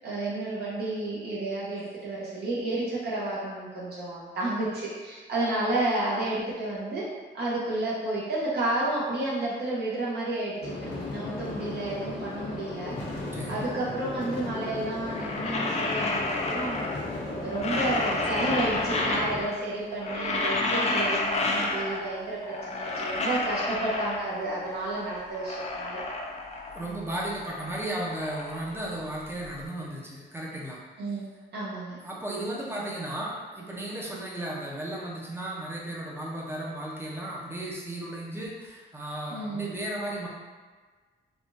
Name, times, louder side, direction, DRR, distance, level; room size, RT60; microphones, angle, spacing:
voice 1, 0.0-7.1 7.3-13.0 13.5-16.9 17.4-26.0 31.0-31.3 31.5-32.0 39.3-39.7, right 2 dB, 60° right, -7 dB, 0.9 m, -31 dB
sound 1, 10.6-19.4, left 2 dB, 75° left, 0.9 m, -35 dB
voice 2, 13.3-13.7 26.7-30.8 32.0-40.3, right 1 dB, 10° right, -4 dB, 0.6 m, -35 dB
sound 2, 15.0-17.1 17.4-19.6 19.9-22.2 22.4-24.5 25.0-27.0 27.3-29.5, left 2 dB, 35° left, 0.4 m, -30 dB
3.5 x 2.3 x 2.6 m, 1.4 s
cardioid pair, 120°, 19 cm